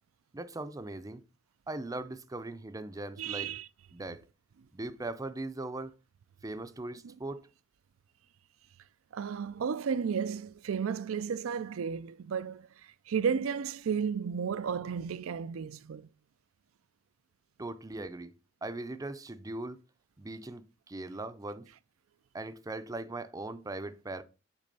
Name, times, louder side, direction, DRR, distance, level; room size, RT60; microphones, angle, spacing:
voice 1, 0.3-1.2 1.7-3.5 3.9-4.2 4.7-5.9 6.4-7.5 17.6-18.3 18.6-19.8 20.2-21.7 22.3-24.2, right 2 dB, 15° right, 0.5 m, -39 dB
voice 2, 3.2-3.7 7.0-7.1 9.1-12.7 13.1-16.1, right 6 dB, 85° right, 0.4 m, -33 dB
8.3 x 3.3 x 5.3 m
head